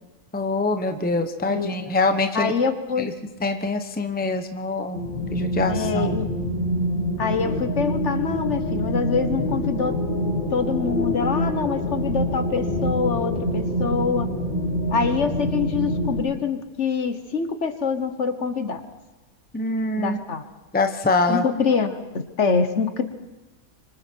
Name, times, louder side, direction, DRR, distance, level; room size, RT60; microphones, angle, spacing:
voice 1, 0.3-2.5 3.0-3.1 3.4-5.0 5.3-6.2 19.5-20.2 20.7-21.4, left 3 dB, 10° left, 6 dB, 0.9 m, -24 dB
voice 2, 1.5-1.9 2.3-3.1 5.7-6.3 7.2-10.0 10.5-14.3 14.9-18.8 20.0-20.4 21.3-23.0, left 5 dB, 55° left, 9 dB, 1.5 m, -25 dB
sound 1, 4.9-16.2, left 1 dB, 75° left, 4.9 m, -26 dB
25.5 x 24.5 x 4.6 m, 1.1 s
omnidirectional pair, 1.4 m